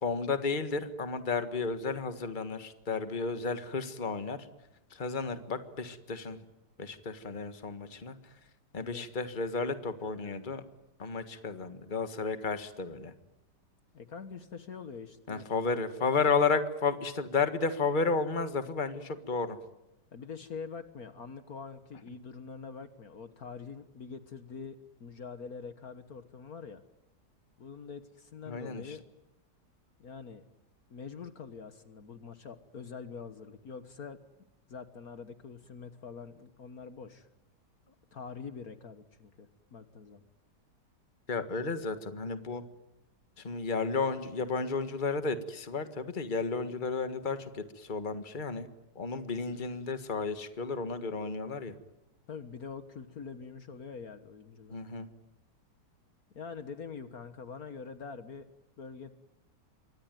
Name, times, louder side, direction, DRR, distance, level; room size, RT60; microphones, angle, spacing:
voice 1, 0.0-4.5 4.9-6.4 6.8-8.1 8.7-10.6 11.0-13.1 15.3-19.6 28.5-29.0 41.3-42.6 43.4-48.7 48.9-51.7 54.7-55.1, left 4 dB, 30° left, 10 dB, 1.7 m, -32 dB
voice 2, 13.9-15.5 20.1-26.8 27.6-29.0 30.0-30.4 30.9-34.2 34.7-37.3 37.9-40.2 52.3-54.8 56.3-58.5 58.8-59.1, left 5 dB, 60° left, 11 dB, 1.8 m, -45 dB
26.5 x 24.0 x 9.3 m, 0.92 s
omnidirectional pair, 1.9 m